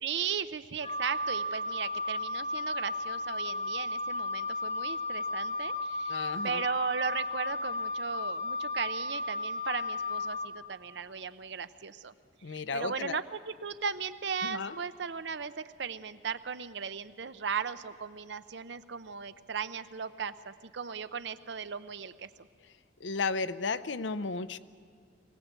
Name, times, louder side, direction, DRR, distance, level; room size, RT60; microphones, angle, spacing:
voice 1, 0.0-12.1 12.5-22.3, right 6 dB, 70° right, 13 dB, 0.6 m, -37 dB
Wind instrument woodwind instrument, 0.8-10.5, left 2 dB, 40° left, 3.3 m, -34 dB
voice 2, 6.1-6.6 12.4-13.2 14.4-14.7 23.0-24.6, left 4 dB, 80° left, 14 dB, 0.6 m, -34 dB
23.5 x 18.0 x 8.1 m, 2.1 s
head